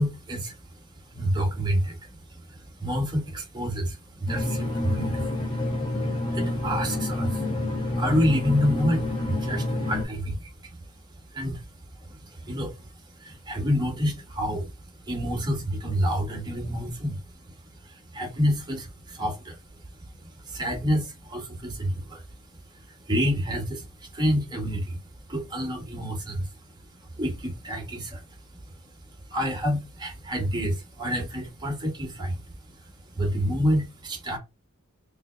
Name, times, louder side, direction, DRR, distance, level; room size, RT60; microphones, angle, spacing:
voice 1, 0.0-5.6 6.0-10.9 11.3-11.7 12.0-22.2 22.5-26.6 26.9-28.4 28.6-28.7 29.1-34.4, equal, 20° right, 1.6 m, -29 dB
sound 1, 4.3-10.0, left 1 dB, 25° left, 1.7 m, -28 dB
3.8 x 3.4 x 3.2 m
head